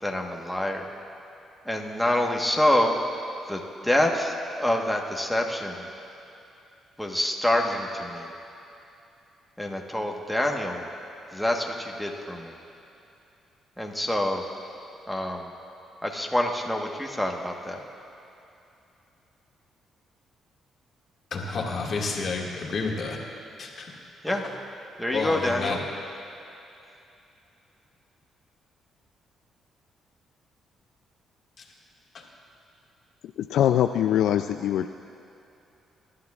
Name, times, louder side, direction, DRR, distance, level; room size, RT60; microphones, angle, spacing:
voice 1, 0.0-0.9 1.7-3.0 3.5-5.7 7.0-8.3 9.6-10.8 11.3-12.5 13.8-14.4 15.1-15.5 16.0-17.8 24.2-24.4 25.0-25.8, left 1 dB, ahead, 0 dB, 1.2 m, -26 dB
voice 2, 21.3-23.2 23.6-23.9 24.3-24.5 25.1-25.8 31.6-31.7 32.1-32.2, left 4 dB, 55° left, -1 dB, 1.9 m, -30 dB
voice 3, 33.4-34.9, left 11 dB, 80° left, 8 dB, 0.3 m, -23 dB
22.0 x 11.5 x 2.4 m, 2.8 s
cardioid pair, 90°, 0 cm